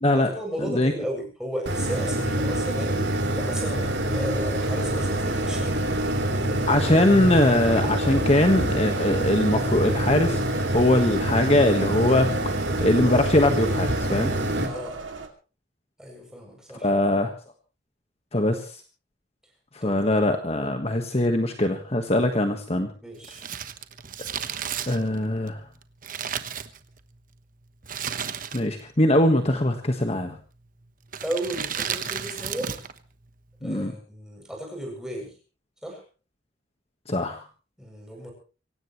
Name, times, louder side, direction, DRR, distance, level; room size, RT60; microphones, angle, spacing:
voice 1, 0.1-3.0 3.4-5.9 8.0-8.2 14.6-15.0 16.0-16.9 19.8-20.1 23.0-23.5 31.2-32.8 33.6-35.4 35.8-36.0 37.8-38.3, right 1 dB, 5° right, 1 dB, 7.5 m, -34 dB
sound 1, 1.7-14.7, right 1 dB, 60° right, 3.9 m, -26 dB
sound 2, 3.8-15.3, right 3 dB, 85° right, 2.7 m, -37 dB
voice 2, 6.7-12.6 12.8-14.3 16.8-17.3 18.3-18.7 19.7-22.9 24.9-25.6 28.5-30.4 33.6-33.9 37.1-37.4, left 1 dB, 35° left, 5 dB, 1.5 m, -22 dB
Crumpling crinkling, 23.2-27.2 27.8-28.9 29.1-29.2 30.1-30.4 31.1-33.0 33.2-33.3, right 8 dB, 45° right, 1.2 m, -33 dB
24.5 x 17.0 x 3.2 m, 0.36 s
head